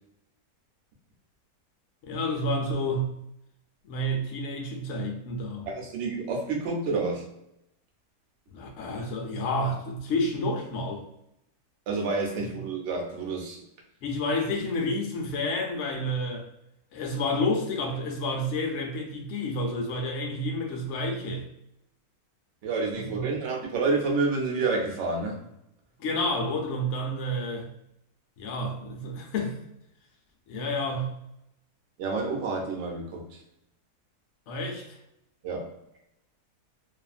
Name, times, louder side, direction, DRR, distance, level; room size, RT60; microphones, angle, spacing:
voice 1, 2.0-3.1 3.8-5.7 8.5-11.0 14.0-16.5 16.9-21.5 23.1-23.2 26.0-27.7 28.4-29.6 30.5-31.1 34.5-35.0, left 1 dB, 70° left, 2 dB, 0.7 m, -30 dB
voice 2, 5.7-7.3 11.9-13.6 22.6-25.4 32.0-33.4 35.4-35.7, right 3 dB, 60° right, 0 dB, 0.8 m, -29 dB
2.6 x 2.4 x 2.4 m, 0.81 s
omnidirectional pair, 1.7 m